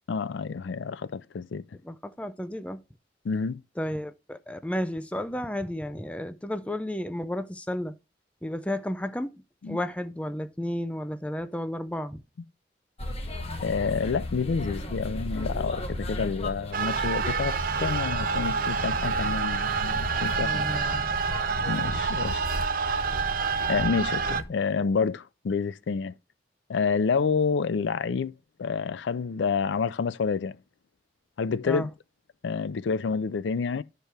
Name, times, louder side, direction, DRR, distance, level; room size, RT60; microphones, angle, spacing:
voice 1, 0.1-1.6 3.2-3.6 9.6-9.8 13.6-20.6 21.7-22.4 23.7-26.1 26.7-28.3 28.6-30.6 31.4-31.9 32.4-33.8, left 5 dB, 80° left, 0.4 m, -28 dB
voice 2, 1.8-2.8 3.8-8.0 8.4-9.4 9.6-12.2 20.3-21.2 22.1-22.2 31.6-31.9, left 1 dB, 5° left, 0.4 m, -32 dB
sound 1, 13.0-24.4, left 1 dB, 35° left, 1.2 m, -35 dB
sound 2, 16.7-24.4, right 6 dB, 50° right, 0.5 m, -28 dB
11.5 x 4.6 x 3.4 m
head